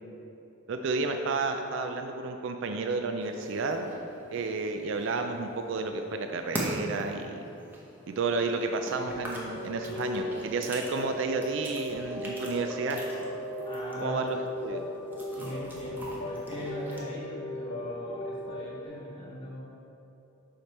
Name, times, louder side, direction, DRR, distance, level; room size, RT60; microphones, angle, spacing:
voice 1, 0.7-3.9 4.3-7.4 8.1-13.0 14.0-14.8, right 3 dB, 60° right, 5 dB, 0.3 m, -31 dB
sound 1, 3.2-17.0, right 1 dB, 10° right, 0.8 m, -43 dB
sound 2, 9.0-18.9, left 1 dB, 70° left, 0.6 m, -37 dB
voice 2, 13.6-14.2 15.3-19.6, left 1 dB, 25° left, -8 dB, 1.1 m, -40 dB
5.8 x 5.0 x 4.1 m, 2.9 s
head